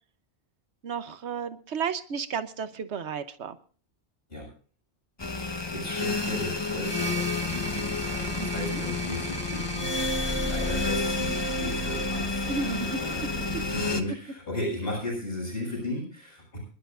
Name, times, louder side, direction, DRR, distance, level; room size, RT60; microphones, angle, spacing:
voice 1, 0.8-3.6 8.4-8.8 12.5-13.0, right 6 dB, 90° right, 11 dB, 1.2 m, -33 dB
sound 1, 5.2-14.0, left 2 dB, 25° left, 1.1 m, -29 dB
voice 2, 5.3-16.6, left 1 dB, 60° left, -5 dB, 7.2 m, -36 dB
25.0 x 11.5 x 2.5 m, 0.40 s
omnidirectional pair, 1.1 m